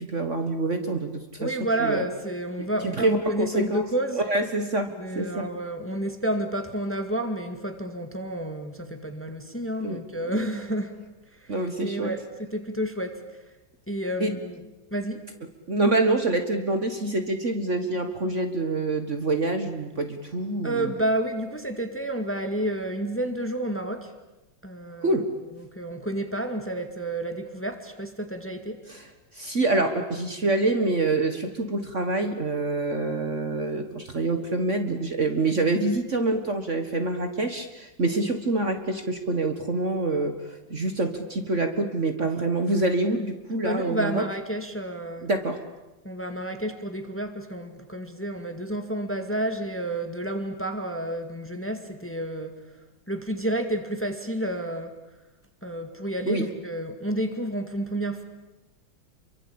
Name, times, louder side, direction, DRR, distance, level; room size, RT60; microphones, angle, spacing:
voice 1, 0.0-1.5 1.8-2.0 2.6-3.8 4.2-5.4 9.8-10.0 11.5-12.1 14.2-14.4 15.7-20.9 25.0-25.3 28.9-40.4 40.7-44.2 45.2-45.6 56.3-56.5, right 2 dB, 40° right, 7 dB, 1.9 m, -26 dB
voice 2, 1.4-4.2 5.0-11.0 11.4-13.4 13.9-14.6 14.9-15.2 20.6-24.1 24.6-25.3 25.6-28.8 43.6-45.3 46.0-52.6 53.1-54.9 55.6-58.2, right 1 dB, 5° left, 7 dB, 2.0 m, -30 dB
28.5 x 23.5 x 8.8 m, 1.0 s
omnidirectional pair, 2.1 m